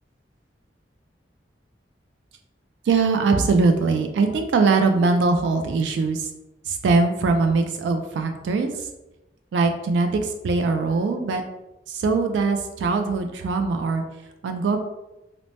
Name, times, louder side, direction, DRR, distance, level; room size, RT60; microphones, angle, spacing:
voice 1, 2.9-6.3 6.7-8.7 9.5-11.4 11.9-14.0 14.4-14.8, right 4 dB, 75° right, 6 dB, 0.3 m, -21 dB
3.2 x 2.0 x 2.7 m, 0.98 s
head